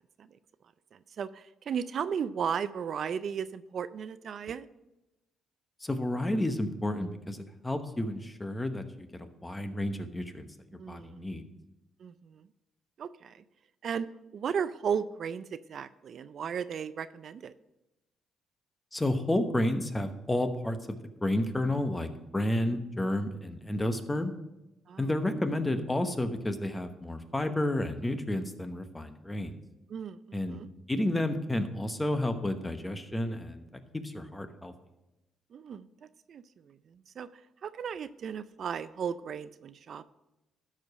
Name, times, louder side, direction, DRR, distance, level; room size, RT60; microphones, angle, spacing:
voice 1, 0.9-4.7 10.7-11.2 12.0-12.5 13.0-13.4 13.8-14.1 14.3-17.5 22.7-22.8 24.9-25.1 29.9-30.7 35.5-40.0, right 7 dB, 60° right, 14 dB, 0.4 m, -36 dB
voice 2, 5.8-8.8 9.1-10.5 10.9-11.4 18.9-20.8 21.2-24.3 25.0-29.6 30.3-30.6 30.9-33.7 33.9-34.7, left 1 dB, 15° left, 8 dB, 1.0 m, -31 dB
13.0 x 4.9 x 5.5 m, 0.97 s
cardioid pair, 90°, 0 cm